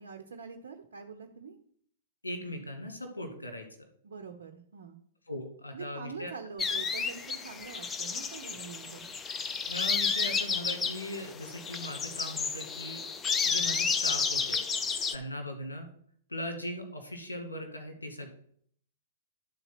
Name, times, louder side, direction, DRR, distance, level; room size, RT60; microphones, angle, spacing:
voice 1, 0.0-1.6 4.0-5.0 5.7-9.1, right 6 dB, 70° right, 5 dB, 0.8 m, -45 dB
voice 2, 2.2-3.7 5.3-6.3 9.7-13.0 13.5-14.6 15.1-15.9 16.3-18.3, left 1 dB, 85° left, 6 dB, 1.6 m, -39 dB
sound 1, 6.6-15.2, left 5 dB, 20° left, 0.6 m, -31 dB
11.0 x 4.0 x 5.9 m, 0.62 s
figure-of-eight pair, 110°, 0 cm